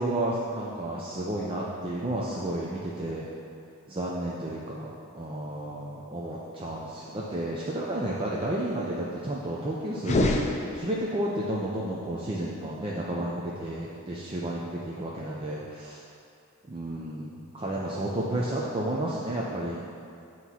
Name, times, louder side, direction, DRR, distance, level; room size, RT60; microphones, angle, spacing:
voice 1, 0.0-3.3 3.9-16.0 16.7-19.8, right 1 dB, 25° right, -5 dB, 0.5 m, -32 dB
sound 1, 10.0-11.3, left 1 dB, 30° left, 0.5 m, -27 dB
8.2 x 3.1 x 5.5 m, 2.5 s
head